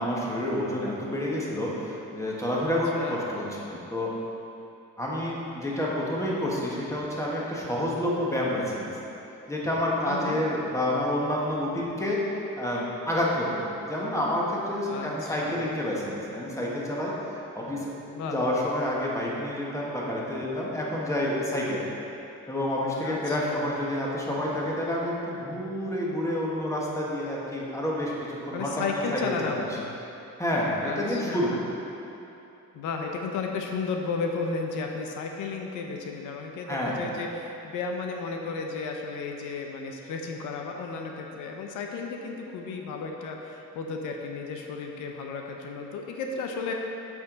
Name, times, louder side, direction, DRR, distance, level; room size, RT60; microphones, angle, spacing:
voice 1, 0.0-4.1 5.0-9.0 9.5-12.2 12.6-13.6 13.9-17.1 17.5-17.9 18.2-21.9 22.5-29.7 30.4-31.5 36.7-37.1, left 1 dB, 10° left, -5 dB, 1.6 m, -29 dB
voice 2, 10.1-10.4 14.9-15.7 18.1-18.4 23.0-23.7 28.5-30.0 30.8-31.6 32.7-46.7, left 4 dB, 90° left, 2 dB, 0.7 m, -34 dB
7.8 x 5.9 x 4.0 m, 2.9 s
cardioid pair, 90°, 30 cm